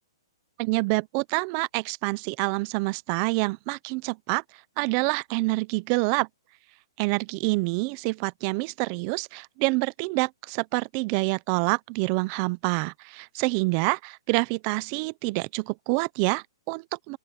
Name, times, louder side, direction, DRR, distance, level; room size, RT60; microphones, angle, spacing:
voice 1, 0.6-4.4 4.8-6.3 7.0-17.2, right 26 dB, 20° right, 0.5 m, -27 dB
open air
hypercardioid pair, 175°, 3 cm